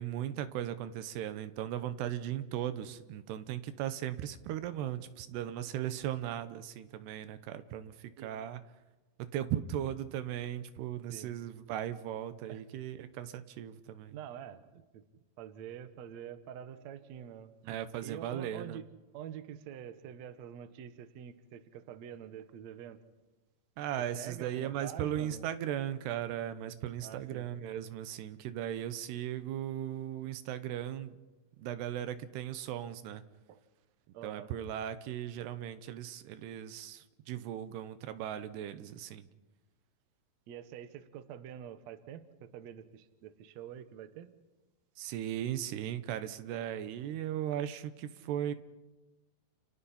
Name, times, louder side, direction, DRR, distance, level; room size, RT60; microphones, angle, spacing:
voice 1, 0.0-8.6 9.2-14.1 17.6-18.8 23.8-31.2 31.6-33.2 34.2-39.3 45.0-48.6, right 11 dB, 90° right, 11 dB, 3.1 m, -37 dB
voice 2, 14.1-15.0 15.4-17.5 18.0-18.8 19.1-23.0 24.0-25.5 27.0-27.5 33.5-33.6 34.1-34.5 35.4-35.5 40.5-44.3, right 9 dB, 65° right, 10 dB, 1.8 m, -46 dB
29.0 x 29.0 x 4.3 m, 1.1 s
omnidirectional pair, 4.6 m